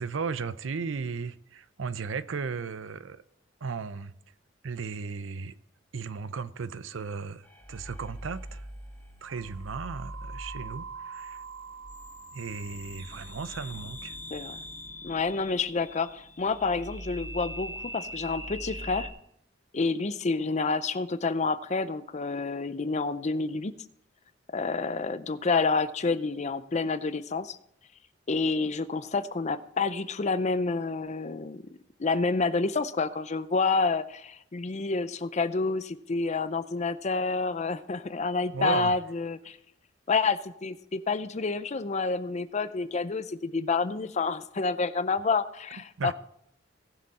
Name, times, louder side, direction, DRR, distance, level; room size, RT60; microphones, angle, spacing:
voice 1, 0.0-3.2 3.6-4.1 4.6-5.5 5.9-8.7 9.2-11.4 12.3-14.2 38.5-38.9 46.0-46.1, right 5 dB, 80° right, 0.6 m, -35 dB
sound 1, 7.4-19.1, right 1 dB, 10° left, 1.7 m, -42 dB
voice 2, 15.0-19.1 19.7-23.7 24.5-27.6 28.3-31.6 32.0-39.6 40.1-46.1, left 4 dB, 35° left, 0.5 m, -28 dB
18.5 x 6.6 x 4.2 m
head